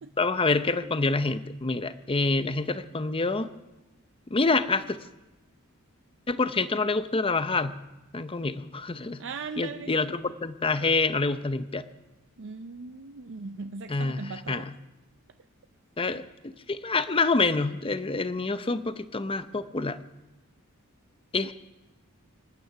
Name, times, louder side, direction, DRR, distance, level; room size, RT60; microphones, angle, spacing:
voice 1, 0.2-3.5 4.3-5.0 6.3-7.8 8.1-9.2 9.6-11.8 13.9-14.2 14.5-14.6 16.0-20.0 21.3-21.5, left 3 dB, 25° left, 12 dB, 0.7 m, -27 dB
voice 2, 9.2-9.9 12.4-14.7, right 4 dB, 60° right, 8 dB, 0.6 m, -39 dB
26.0 x 9.4 x 5.8 m, 1.0 s
head